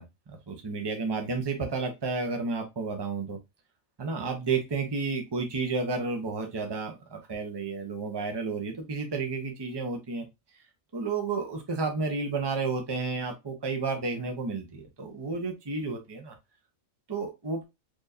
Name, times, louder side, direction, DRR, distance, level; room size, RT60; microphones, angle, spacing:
voice 1, 0.0-3.4 4.0-10.3 10.9-16.3 17.1-17.6, right 4 dB, 25° right, 3 dB, 0.8 m, -31 dB
4.3 x 3.2 x 2.7 m, 0.22 s
omnidirectional pair, 1.4 m